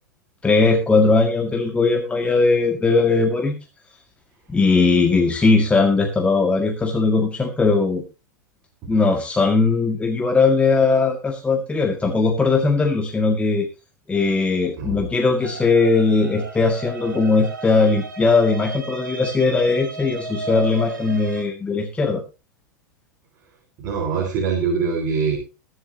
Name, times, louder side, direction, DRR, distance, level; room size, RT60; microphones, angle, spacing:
voice 1, 0.4-3.6 4.5-8.0 8.9-13.7 14.1-22.2, left 3 dB, 10° left, 2 dB, 1.9 m, -19 dB
sound 1, 15.4-21.4, right 3 dB, 75° right, 3.5 m, -34 dB
voice 2, 23.8-25.4, right 5 dB, 35° right, 0 dB, 4.1 m, -23 dB
21.0 x 7.9 x 2.9 m, 0.30 s
figure-of-eight pair, 90°, 10 cm